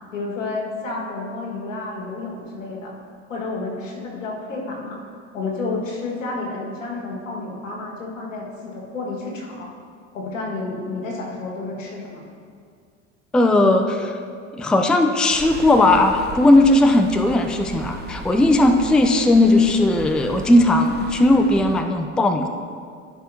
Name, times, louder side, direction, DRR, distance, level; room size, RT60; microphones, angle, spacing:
voice 1, 0.1-2.9 3.3-5.0 5.3-9.7 10.1-12.2, left 3 dB, 85° left, -2 dB, 1.9 m, -30 dB
voice 2, 13.3-14.2 14.5-22.5, left 2 dB, ahead, 6 dB, 0.4 m, -17 dB
sound 1, 15.3-21.8, right 4 dB, 25° right, 0.9 m, -37 dB
13.5 x 5.8 x 2.8 m, 2.2 s
hypercardioid pair, 80°, 37 cm